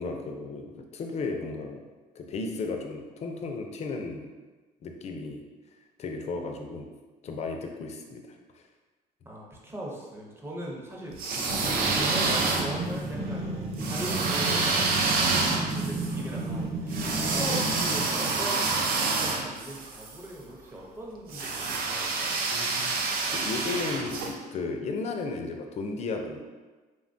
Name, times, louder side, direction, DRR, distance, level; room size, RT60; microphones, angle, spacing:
voice 1, 0.0-1.8 2.2-4.3 4.8-5.5 6.0-6.9 7.2-8.2 8.5-8.6 17.2-17.6 22.5-23.0 23.3-26.4, left 3 dB, 40° left, 3 dB, 0.4 m, -34 dB
voice 2, 9.2-13.5 13.8-22.4, right 1 dB, 15° right, -2 dB, 0.6 m, -40 dB
sound 1, 11.1-13.0 13.8-20.2 21.3-24.3, right 3 dB, 65° right, 0.4 m, -28 dB
sound 2, 11.5-18.2, right 2 dB, 40° right, 0.8 m, -33 dB
3.2 x 2.2 x 2.5 m, 1.3 s
cardioid pair, 110°, 17 cm